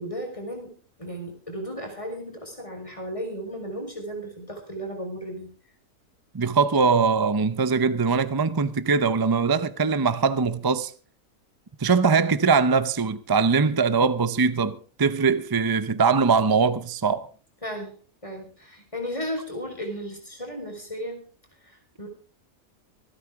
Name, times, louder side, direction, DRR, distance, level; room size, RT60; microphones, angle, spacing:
voice 1, 0.0-5.5 17.6-18.0 18.2-21.2 21.6-22.1, equal, 20° left, 4.3 m, -35 dB
voice 2, 6.3-10.9 11.8-17.3, right 5 dB, 30° right, 0.4 m, -22 dB
25.0 x 9.6 x 3.6 m
omnidirectional pair, 1.5 m